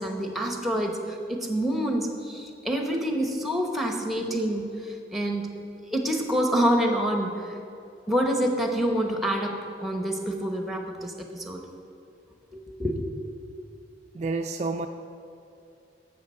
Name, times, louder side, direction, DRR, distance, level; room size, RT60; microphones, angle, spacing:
voice 1, 0.0-5.5 5.9-7.6 8.1-9.6 9.8-11.6 12.5-13.0, equal, ahead, 3 dB, 0.9 m, -27 dB
voice 2, 14.1-14.9, right 3 dB, 40° right, 5 dB, 0.3 m, -29 dB
14.0 x 6.2 x 4.3 m, 2.7 s
head